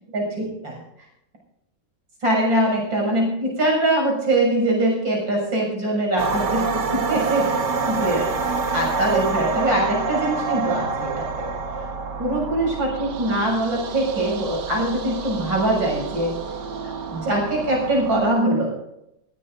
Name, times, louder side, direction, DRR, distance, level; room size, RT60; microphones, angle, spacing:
voice 1, 0.1-0.8 2.2-7.5 7.8-8.4 8.7-11.5 12.2-16.3 16.8-18.7, right 1 dB, 85° right, -1 dB, 7.7 m, -23 dB
sound 1, 6.2-18.3, right 4 dB, 65° right, 1.9 m, -28 dB
21.0 x 17.5 x 2.6 m, 0.82 s
omnidirectional pair, 2.0 m